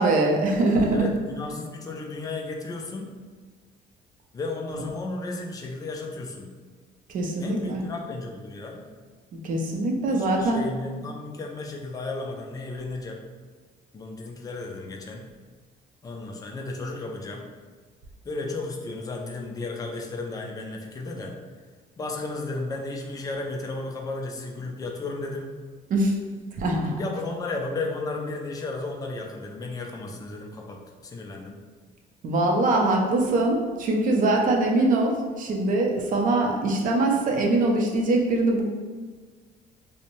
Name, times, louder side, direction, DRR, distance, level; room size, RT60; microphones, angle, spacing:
voice 1, 0.0-1.1 7.1-7.8 9.4-10.6 25.9-26.1 26.6-26.9 32.2-38.6, right 2 dB, 50° right, 0 dB, 0.5 m, -23 dB
voice 2, 0.9-3.1 4.3-6.5 7.4-8.9 10.1-13.2 13.9-15.3 16.0-17.4 18.2-21.3 22.0-25.5 27.0-31.6, left 3 dB, 20° left, 1 dB, 0.4 m, -34 dB
2.6 x 2.1 x 3.0 m, 1.5 s
cardioid pair, 110°, 17 cm